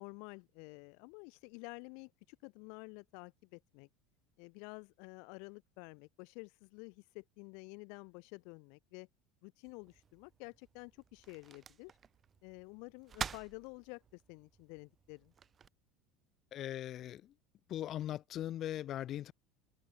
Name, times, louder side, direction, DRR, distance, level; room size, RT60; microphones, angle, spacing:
voice 1, 0.0-3.9 4.4-9.1 9.4-12.0 12.4-15.3, left 37 dB, 70° left, 0.8 m, -50 dB
sound 1, 9.6-15.7, right 7 dB, 30° right, 2.9 m, -48 dB
voice 2, 16.5-17.3 17.7-19.3, left 12 dB, 50° left, 1.2 m, -40 dB
supercardioid pair, 100°, 0 cm